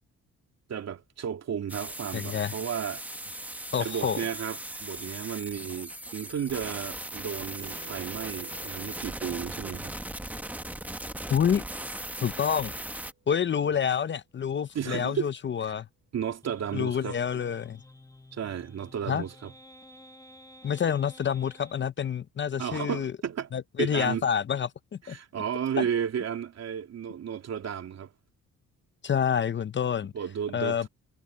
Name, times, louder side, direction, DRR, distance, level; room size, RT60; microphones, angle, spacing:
voice 1, 0.7-3.3 3.8-9.9 14.7-15.3 15.6-15.7 16.1-17.2 18.3-19.5 22.6-23.5 23.8-24.3 25.0-28.1 30.1-30.9, right 8 dB, 60° right, 3.3 m, -33 dB
sound 1, 1.7-13.1, right 1 dB, 5° right, 1.4 m, -38 dB
voice 2, 2.1-2.5 3.7-4.2 11.3-11.6 12.2-12.7 13.3-15.9 16.7-17.8 19.1-19.2 20.6-23.1 23.5-25.2 29.0-30.1 30.5-30.9, left 8 dB, 40° left, 0.7 m, -28 dB
Keyboard (musical), 7.6-13.6, right 6 dB, 40° right, 7.4 m, -55 dB
sound 2, 16.4-21.8, left 1 dB, 10° left, 1.1 m, -52 dB
cardioid pair, 90°, 30 cm